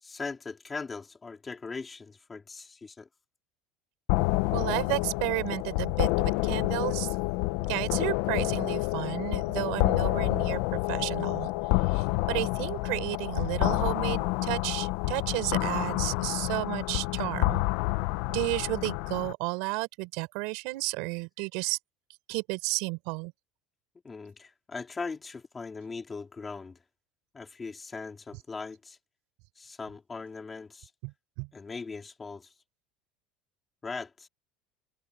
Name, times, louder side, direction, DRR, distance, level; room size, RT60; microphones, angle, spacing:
voice 1, 0.0-3.1 24.0-26.8 27.3-29.0 29.6-30.9 31.5-32.5 33.8-34.3, left 4 dB, 10° left, 3.4 m, -40 dB
sound 1, 4.1-19.3, left 21 dB, 60° left, 0.7 m, -28 dB
voice 2, 4.5-7.1 7.7-11.5 11.9-17.6 18.3-21.8 22.3-23.3 31.0-31.1 31.4-31.5, right 27 dB, 60° right, 5.6 m, -32 dB
cardioid pair, 180°, 0 cm